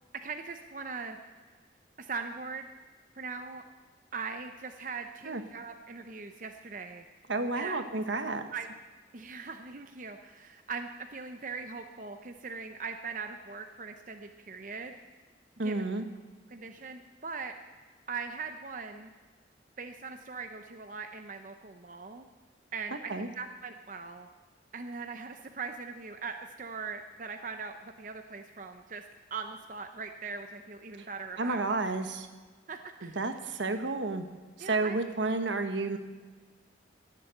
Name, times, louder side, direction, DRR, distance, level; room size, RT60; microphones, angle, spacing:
voice 1, 0.1-1.2 2.0-2.7 3.1-3.6 4.1-7.0 7.5-8.2 8.5-8.7 9.1-15.0 15.6-15.9 16.5-17.5 18.1-19.1 19.8-22.3 22.7-24.3 24.7-29.0 29.3-31.7 32.7-33.4 34.6-35.0, right 5 dB, 45° right, 6 dB, 0.7 m, -40 dB
voice 2, 7.3-8.4 15.6-16.0 23.1-23.3 31.4-32.3 33.0-34.3 34.6-36.0, right 3 dB, 80° right, 7 dB, 1.2 m, -31 dB
17.5 x 7.5 x 7.7 m, 1.4 s
head